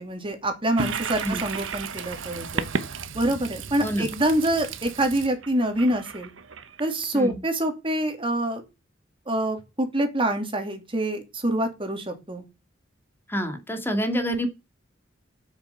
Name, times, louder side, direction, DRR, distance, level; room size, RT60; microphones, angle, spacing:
voice 1, 0.0-2.7 3.1-6.3 6.8-8.6 9.3-12.4, right 1 dB, 25° right, 5 dB, 2.8 m, -26 dB
Toilet flush, 0.8-7.3, right 4 dB, 85° right, 1.2 m, -33 dB
voice 2, 3.8-4.1 7.1-7.4 13.3-14.5, equal, 10° left, 6 dB, 2.3 m, -27 dB
8.2 x 7.3 x 7.4 m, 0.26 s
head